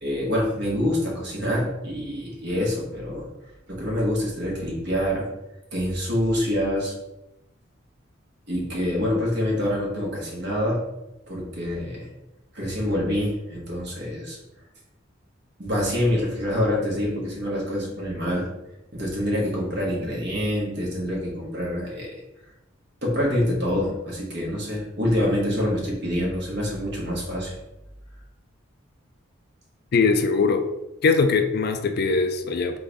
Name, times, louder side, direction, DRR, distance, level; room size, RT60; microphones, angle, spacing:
voice 1, 0.0-3.3 3.7-5.3 5.7-6.9 8.5-10.8 11.3-12.1 12.5-14.4 15.6-18.5 18.9-22.2 23.0-27.5, left 1 dB, 60° right, -3 dB, 1.4 m, -26 dB
voice 2, 29.9-30.6 31.0-32.8, left 4 dB, 55° left, 6 dB, 0.4 m, -21 dB
3.9 x 3.8 x 3.5 m, 0.94 s
head